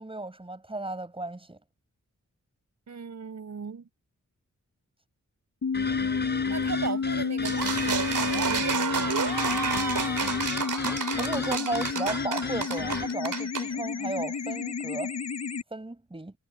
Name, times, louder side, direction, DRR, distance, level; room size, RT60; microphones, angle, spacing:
voice 1, 0.0-1.6 10.8-15.1 15.7-16.3, right 2 dB, 15° right, 5.6 m, -35 dB
voice 2, 2.9-3.9 6.5-9.3, right 5 dB, 60° right, 6.6 m, -37 dB
sound 1, 5.6-15.6, left 5 dB, 60° left, 4.3 m, -31 dB
sound 2, 5.7-13.2, left 3 dB, 35° left, 4.3 m, -36 dB
sound 3, 7.4-13.7, right 6 dB, 80° right, 2.5 m, -30 dB
wide cardioid pair, 165°, 31 cm